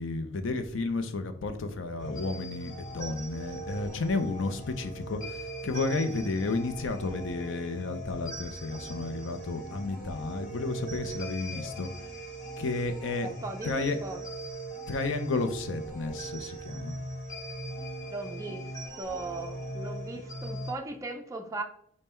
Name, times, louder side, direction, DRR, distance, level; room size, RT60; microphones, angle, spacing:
voice 1, 0.0-11.9 12.6-13.3 13.6-14.0 14.9-17.0, left 3 dB, 65° left, 8 dB, 0.5 m, -32 dB
sound 1, 2.0-20.7, right 1 dB, 20° left, 1.7 m, -40 dB
voice 2, 13.2-14.2 18.1-18.7 19.0-21.6, right 2 dB, 15° right, 3 dB, 0.4 m, -38 dB
5.3 x 2.1 x 4.3 m, 0.67 s
head